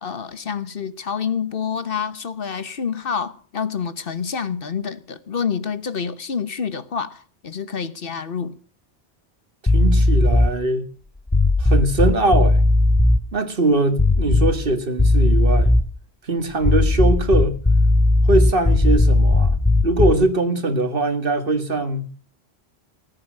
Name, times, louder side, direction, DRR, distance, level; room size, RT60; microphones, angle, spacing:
voice 1, 0.0-8.5, left 6 dB, 60° left, 1.2 m, -27 dB
sound 1, 9.7-10.6 11.3-13.2 14.0-14.7 15.0-15.9 16.6-20.3, left 2 dB, 10° left, 0.6 m, -17 dB
voice 2, 9.7-10.8 11.6-12.6 13.3-15.8 16.2-17.6 18.3-22.1, right 2 dB, 55° right, 2.0 m, -21 dB
19.0 x 8.9 x 6.5 m
omnidirectional pair, 1.1 m